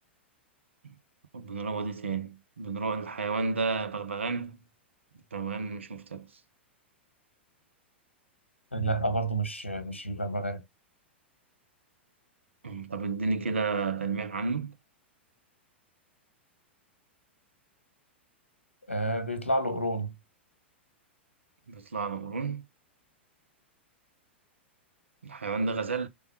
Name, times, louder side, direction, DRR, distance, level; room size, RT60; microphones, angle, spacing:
voice 1, 1.3-4.6 5.3-6.3 12.6-14.7 21.7-22.6 25.2-26.1, right 4 dB, 80° right, 0.7 m, -32 dB
voice 2, 8.7-10.6 18.9-20.1, right 1 dB, 90° left, 1.0 m, -29 dB
3.4 x 2.3 x 4.2 m
figure-of-eight pair, 100°, 6 cm